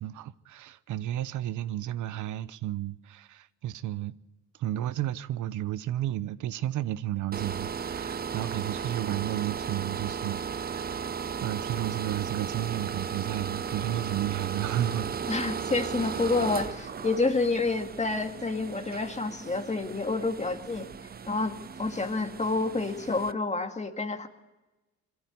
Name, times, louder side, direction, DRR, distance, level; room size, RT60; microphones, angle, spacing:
voice 1, 0.0-4.1 4.6-11.1 11.4-15.2, right 13 dB, 75° right, 0.8 m, -32 dB
sound 1, 7.3-23.3, right 6 dB, 30° right, 0.7 m, -36 dB
voice 2, 15.3-20.9 21.3-24.3, left 3 dB, 25° left, 2.2 m, -29 dB
22.0 x 13.0 x 9.5 m
cardioid pair, 90°, 30 cm